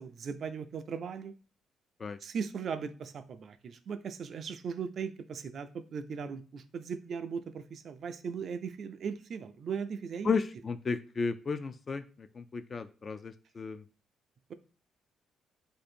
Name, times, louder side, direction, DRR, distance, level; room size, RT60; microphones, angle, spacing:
voice 1, 0.0-1.3 2.2-10.3, right 6 dB, 55° right, 11 dB, 0.3 m, -38 dB
voice 2, 10.2-13.8, left 5 dB, 40° left, 12 dB, 0.3 m, -34 dB
2.6 x 2.6 x 4.2 m, 0.36 s
cardioid pair, 90°, 0 cm